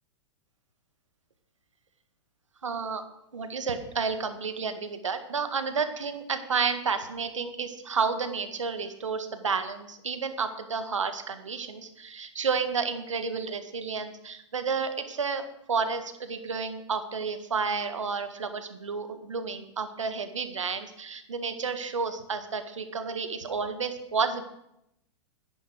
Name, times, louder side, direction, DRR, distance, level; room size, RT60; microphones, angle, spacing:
voice 1, 2.6-3.0 3.3-24.4, right 5 dB, 85° right, 9 dB, 1.8 m, -31 dB
13.5 x 10.5 x 6.3 m, 0.81 s
hypercardioid pair, 110°, 15 cm